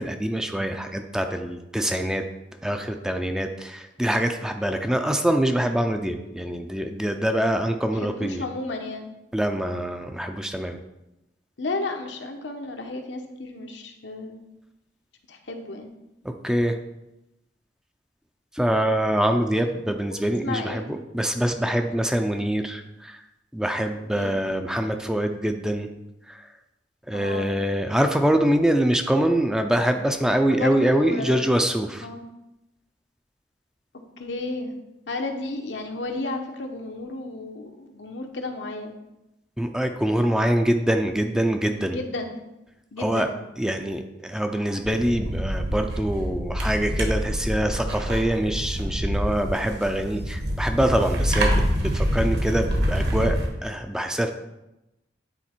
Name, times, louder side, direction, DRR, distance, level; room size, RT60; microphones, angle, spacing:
voice 1, 0.0-2.2 2.6-8.4 9.3-10.8 16.4-16.8 18.5-23.2 23.5-25.9 26.3-26.5 27.1-32.1 39.6-42.0 43.0-43.3 43.6-54.3, right 1 dB, 5° right, 5 dB, 0.4 m, -24 dB
voice 2, 8.0-9.1 11.6-14.4 15.3-15.9 19.6-19.8 20.1-20.2 20.4-20.8 24.1-24.3 27.1-27.6 30.5-31.6 32.0-32.2 34.2-34.7 35.1-38.9 41.8-42.4 42.9-43.3, left 2 dB, 80° left, 4 dB, 1.0 m, -33 dB
sound 1, 44.8-53.5, equal, 65° right, 1.6 m, -26 dB
9.9 x 4.0 x 4.4 m, 0.92 s
head